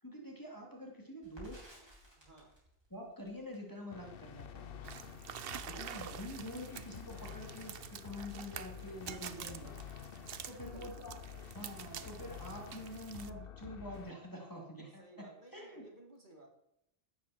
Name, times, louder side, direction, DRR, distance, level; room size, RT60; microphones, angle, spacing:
voice 1, 0.0-1.8 2.9-5.1 5.3-9.7 10.5-11.1 11.5-15.8, left 1 dB, 15° left, -1 dB, 2.7 m, -47 dB
Crackle, 1.2-9.3 9.6-9.8 10.1-10.8, equal, 20° right, 5.0 m, -60 dB
voice 2, 2.2-2.5 5.5-5.9 9.4-9.8 10.4-11.4 15.0-16.5, right 1 dB, 40° right, 0 dB, 2.9 m, -57 dB
sound 1, 3.9-14.1, left 8 dB, 55° left, 0.9 m, -49 dB
sound 2, 4.8-13.3, right 9 dB, 60° right, 0.8 m, -48 dB
16.5 x 12.5 x 4.4 m, 0.77 s
omnidirectional pair, 1.2 m